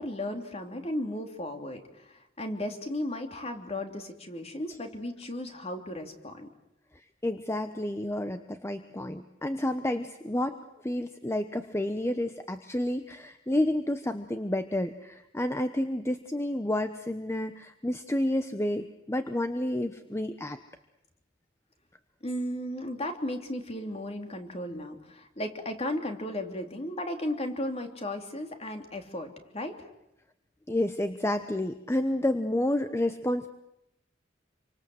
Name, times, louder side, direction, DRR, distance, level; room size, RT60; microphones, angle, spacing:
voice 1, 0.0-6.5 22.2-29.9, left 1 dB, 35° left, 5 dB, 3.0 m, -35 dB
voice 2, 7.2-20.6 30.7-33.5, left 1 dB, 15° left, 9 dB, 0.9 m, -30 dB
27.5 x 25.0 x 7.9 m, 0.88 s
head